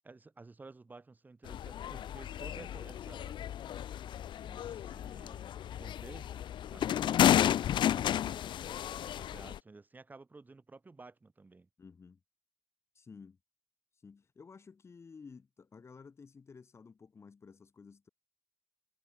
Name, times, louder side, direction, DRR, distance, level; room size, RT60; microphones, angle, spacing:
voice 1, 0.0-3.4 4.4-11.7, right 3 dB, 20° right, 6.9 m, -54 dB
sound 1, 1.5-9.6, left 10 dB, 70° left, 0.6 m, -32 dB
voice 2, 11.8-12.2 13.0-13.4 14.0-18.1, left 5 dB, 35° left, 3.5 m, -53 dB
wide cardioid pair, 160°, 8 cm